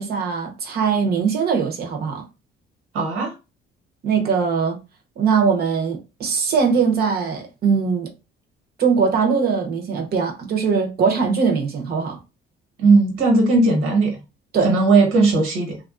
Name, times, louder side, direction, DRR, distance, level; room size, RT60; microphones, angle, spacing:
voice 1, 0.0-2.2 4.0-4.8 5.2-8.1 8.8-12.2 14.5-14.7, right 5 dB, 50° right, 0.7 m, -21 dB
voice 2, 2.9-3.3 12.8-14.2 14.6-15.8, right 3 dB, 90° right, 1.2 m, -17 dB
3.4 x 2.3 x 2.4 m
cardioid pair, 155°, 21 cm